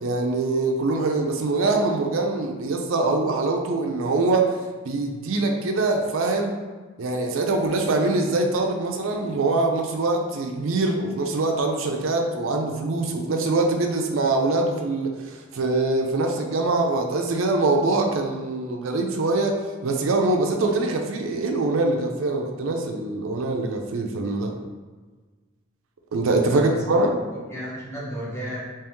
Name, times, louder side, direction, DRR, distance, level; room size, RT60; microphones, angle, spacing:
voice 1, 0.0-4.6 4.8-6.6 7.0-24.5 26.1-27.1, right 2 dB, 70° right, 3 dB, 0.4 m, -23 dB
voice 2, 26.5-27.1 27.3-28.6, equal, 15° left, -6 dB, 0.8 m, -33 dB
3.5 x 3.0 x 3.0 m, 1.4 s
head